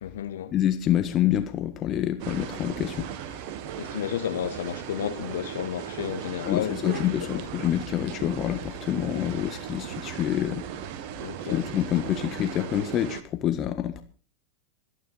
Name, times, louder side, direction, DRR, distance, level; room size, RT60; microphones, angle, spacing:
voice 1, 0.0-0.5 3.8-7.5 11.2-11.6, left 10 dB, 60° left, 2.2 m, -32 dB
voice 2, 0.5-3.1 6.4-10.6 11.5-14.0, left 11 dB, 30° left, 1.5 m, -27 dB
sound 1, 2.2-13.2, right 9 dB, 45° right, 1.5 m, -37 dB
25.0 x 10.5 x 4.0 m
figure-of-eight pair, 90°, 0 cm